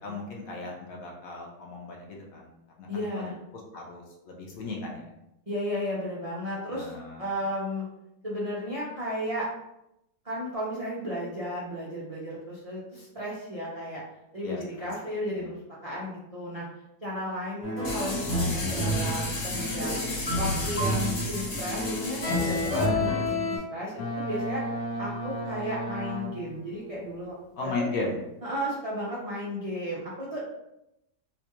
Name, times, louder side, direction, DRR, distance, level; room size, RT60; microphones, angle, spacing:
voice 1, 0.0-2.5 2.8-3.2 3.7-5.1 6.7-7.2 14.4-14.9 15.3-15.4 27.6-28.2, left 3 dB, 60° left, -1 dB, 1.0 m, -36 dB
voice 2, 2.9-3.3 5.5-7.8 8.2-9.5 10.2-14.0 14.3-16.7 17.0-20.0 20.4-24.7 25.0-27.9 28.4-30.4, equal, 70° right, -7 dB, 0.3 m, -34 dB
sound 1, 17.6-23.6, left 1 dB, 5° right, 0.8 m, -29 dB
sound 2, 17.8-22.8, left 2 dB, 40° left, 0.8 m, -34 dB
Boat Water vehicle, 24.0-26.7, right 1 dB, 85° left, 1.3 m, -34 dB
4.2 x 2.3 x 3.0 m, 0.86 s
omnidirectional pair, 1.9 m